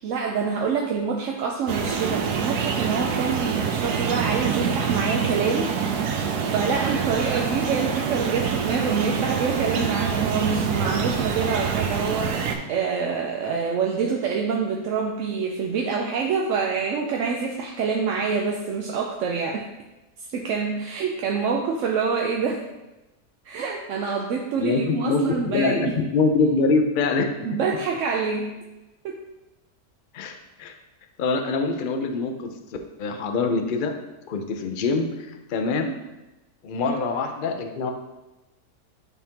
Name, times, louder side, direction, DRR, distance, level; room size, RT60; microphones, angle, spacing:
voice 1, 0.0-5.7 6.1-19.7 20.3-22.7 23.4-26.0 27.4-28.6 29.0-29.2 36.8-37.0, right 5 dB, 65° right, 1 dB, 0.8 m, -26 dB
sound 1, 1.7-12.6, right 6 dB, 85° right, 1.2 m, -26 dB
voice 2, 24.6-27.3 30.1-30.7 31.2-32.6 33.0-33.9 34.3-35.9 36.6-37.9, left 4 dB, 65° left, 5 dB, 0.5 m, -24 dB
10.5 x 3.6 x 2.9 m, 1.0 s
omnidirectional pair, 1.7 m